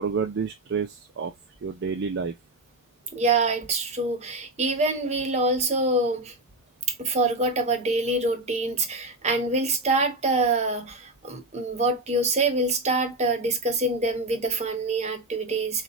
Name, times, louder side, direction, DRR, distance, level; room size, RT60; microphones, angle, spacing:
voice 1, 0.0-1.3 1.6-2.3, right 5 dB, 50° right, 0.5 m, -29 dB
voice 2, 3.1-6.3 7.0-15.8, right 2 dB, 30° right, 1.0 m, -25 dB
3.9 x 2.4 x 4.1 m
head